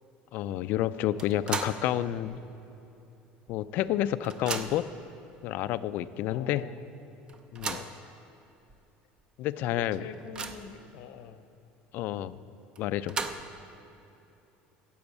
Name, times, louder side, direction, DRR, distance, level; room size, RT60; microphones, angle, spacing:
voice 1, 0.3-2.4 3.5-4.9 5.4-6.6 7.5-7.8 9.4-10.0 11.9-12.4 12.8-13.2, left 12 dB, 50° left, 14 dB, 0.3 m, -29 dB
voice 2, 1.0-1.6 6.3-6.8 7.7-8.0 9.7-11.4, left 8 dB, 70° left, 10 dB, 0.7 m, -46 dB
sound 1, 1.2-1.9 2.3-2.4 3.5-3.6 3.9-5.0 5.7-5.8 6.2-6.3 7.3-8.0 8.7-8.8 9.2-9.3 9.8-10.8 12.8-13.7, right 4 dB, 20° right, 0.5 m, -36 dB
10.5 x 7.0 x 8.3 m, 2.9 s
cardioid pair, 160°, 4 cm